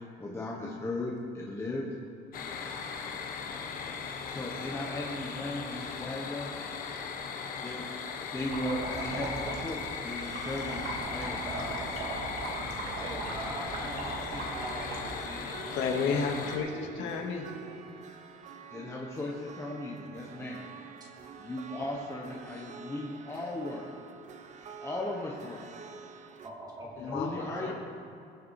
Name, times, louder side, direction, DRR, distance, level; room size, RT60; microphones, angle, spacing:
voice 1, 0.2-1.9 4.3-6.6 7.6-7.8 8.1-11.8 18.7-20.7 21.4-23.9 24.8-25.7 27.0-27.7, left 1 dB, 15° left, -3 dB, 1.2 m, -37 dB
sound 1, 2.3-16.6, left 6 dB, 50° left, 1.3 m, -38 dB
sound 2, 8.4-15.1, right 2 dB, 65° right, 2.5 m, -38 dB
sound 3, 9.4-26.5, right 6 dB, 40° right, 0.8 m, -49 dB
voice 2, 12.8-16.1 16.4-16.6 16.9-17.1 26.4-27.7, right 1 dB, 20° right, -3 dB, 2.5 m, -43 dB
voice 3, 15.7-17.6 27.0-27.7, left 5 dB, 80° left, 1 dB, 2.0 m, -32 dB
21.5 x 7.3 x 4.8 m, 2.5 s
cardioid pair, 175°, 19 cm